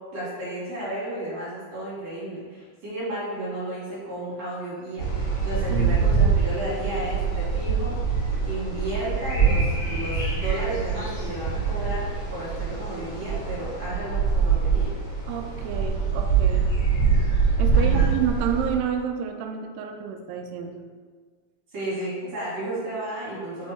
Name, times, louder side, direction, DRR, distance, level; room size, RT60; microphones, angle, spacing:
voice 1, 0.1-7.9 8.4-14.9 17.7-18.2 21.7-23.7, right 1 dB, 50° right, -9 dB, 2.8 m, -33 dB
sound 1, 5.0-18.7, right 5 dB, 45° left, 1.8 m, -24 dB
voice 2, 5.7-6.3 15.3-16.7 17.6-20.8, right 8 dB, 80° right, 5 dB, 2.2 m, -29 dB
6.3 x 3.5 x 4.3 m, 1.5 s
omnidirectional pair, 4.0 m